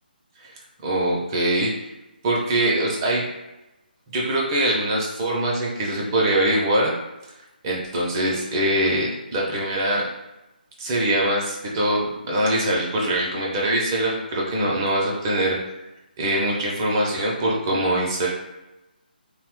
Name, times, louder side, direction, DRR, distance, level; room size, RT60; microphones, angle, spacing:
voice 1, 0.8-1.9 2.2-3.2 4.1-6.9 7.6-10.0 10.8-15.6 16.2-18.3, right 1 dB, 25° right, -3 dB, 0.4 m, -23 dB
2.8 x 2.0 x 3.0 m, 1.0 s
figure-of-eight pair, 145°, 5 cm